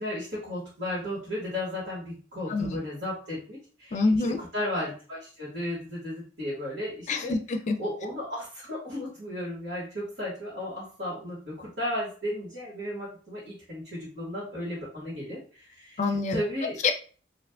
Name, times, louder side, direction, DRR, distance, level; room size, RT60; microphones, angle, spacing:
voice 1, 0.0-7.4 7.8-16.8, left 1 dB, 65° right, -8 dB, 1.5 m, -34 dB
voice 2, 3.9-4.4 7.1-7.8 16.0-16.4 16.8-16.9, left 3 dB, 40° left, 5 dB, 0.4 m, -26 dB
2.5 x 2.4 x 3.4 m, 0.41 s
head